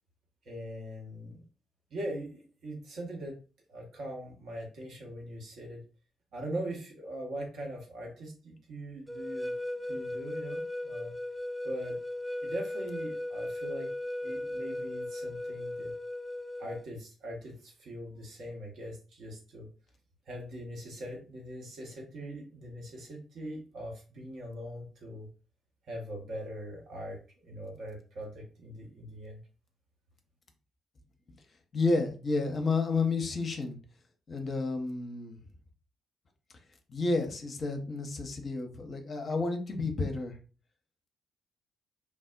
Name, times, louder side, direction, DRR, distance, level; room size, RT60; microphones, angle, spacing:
voice 1, 0.4-1.4 1.9-3.4 3.7-5.8 6.3-9.5 9.9-11.1 11.6-12.0 12.4-13.9 14.2-15.9 16.6-19.7 20.3-25.3 25.8-29.4, right 1 dB, 60° right, -1 dB, 0.8 m, -41 dB
sound 1, 9.1-16.9, left 1 dB, 5° right, 0.3 m, -37 dB
voice 2, 31.7-33.8 34.3-35.4 36.9-40.4, left 3 dB, 45° left, 5 dB, 0.6 m, -31 dB
3.2 x 2.0 x 2.4 m, 0.36 s
figure-of-eight pair, 40°, 0 cm